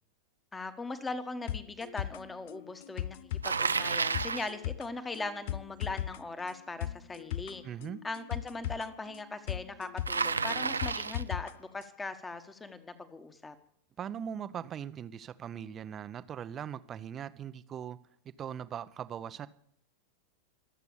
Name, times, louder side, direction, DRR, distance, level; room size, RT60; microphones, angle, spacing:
voice 1, 0.5-7.6 8.0-13.5, left 3 dB, 10° left, 1.5 m, -40 dB
sound 1, 1.5-11.5 11.8-11.9, left 12 dB, 55° left, 0.5 m, -38 dB
Bicycle, 3.4-4.5 10.1-11.3, right 5 dB, 75° right, 0.5 m, -31 dB
voice 2, 7.6-8.0 14.0-18.0 18.4-19.5, right 9 dB, 25° right, 0.8 m, -40 dB
24.0 x 8.2 x 7.0 m
figure-of-eight pair, 90°, 0 cm